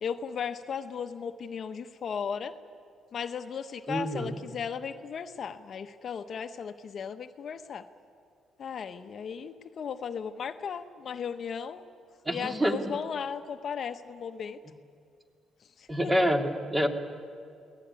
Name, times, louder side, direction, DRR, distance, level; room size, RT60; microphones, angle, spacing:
voice 1, 0.0-2.5 3.1-7.8 8.6-11.8 12.3-14.6 15.8-15.9, left 7 dB, 55° left, 9 dB, 1.0 m, -36 dB
voice 2, 3.9-4.4 12.2-12.8 15.9-16.9, equal, 15° right, 4 dB, 2.5 m, -27 dB
23.0 x 18.0 x 9.8 m, 2.3 s
cardioid pair, 90°, 0 cm